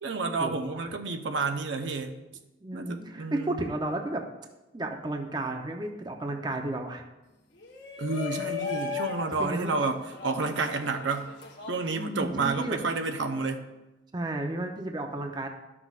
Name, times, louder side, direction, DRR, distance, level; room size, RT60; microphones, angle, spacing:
voice 1, 0.0-2.2 2.7-3.6 8.0-11.3 11.7-13.7, right 3 dB, 85° right, 5 dB, 0.7 m, -30 dB
voice 2, 2.6-4.2 4.7-7.0 9.4-9.7 11.9-12.8 14.1-15.5, right 2 dB, 25° right, 3 dB, 0.6 m, -32 dB
Shout, 7.6-12.7, left 5 dB, 70° left, 1.1 m, -37 dB
13.0 x 6.0 x 2.4 m, 1.0 s
head